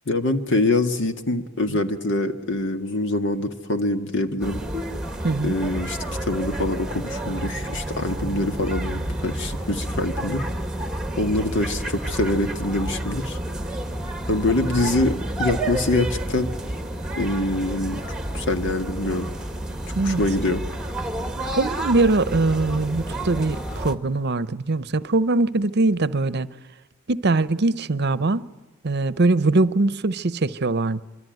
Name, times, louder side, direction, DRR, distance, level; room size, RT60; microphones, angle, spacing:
voice 1, 0.1-4.6 5.4-10.5 11.2-13.4 14.3-16.5 17.2-18.0 18.3-19.3 19.9-20.6, left 2 dB, 60° left, 1.9 m, -24 dB
sound 1, 4.4-24.0, right 1 dB, 5° right, 1.7 m, -30 dB
voice 2, 5.2-5.6 20.0-20.2 21.6-26.5 27.1-28.5 28.8-31.0, right 2 dB, 55° right, 0.8 m, -22 dB
sound 2, 7.2-15.2, right 2 dB, 20° left, 4.0 m, -42 dB
25.0 x 25.0 x 9.3 m
head